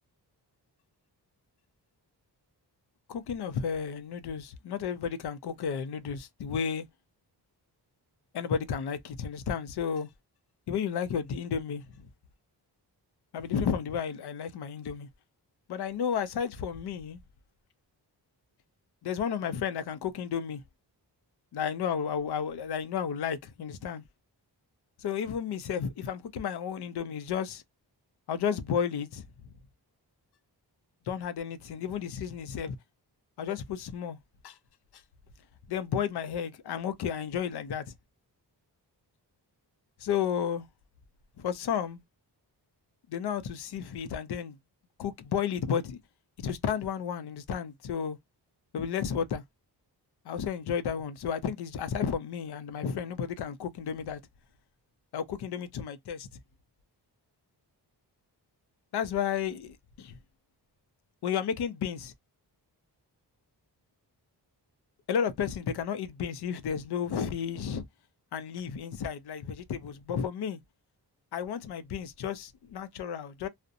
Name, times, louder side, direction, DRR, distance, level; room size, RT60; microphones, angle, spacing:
voice 1, 3.1-6.9 8.3-10.1 10.7-11.8 13.3-15.1 15.7-17.2 19.0-20.6 21.5-24.0 25.0-27.6 28.3-29.2 31.1-32.8 33.4-34.2 34.4-34.6 35.7-37.8 40.0-40.7 41.4-42.0 43.1-44.6 45.0-46.0 46.4-48.2 48.7-49.4 50.3-54.2 55.1-56.3 58.9-60.2 61.2-62.1 65.1-67.8 68.3-70.6 71.3-73.5, left 7 dB, 70° left, 0.5 m, -32 dB
2.4 x 2.1 x 2.6 m
wide cardioid pair, 150°, 41 cm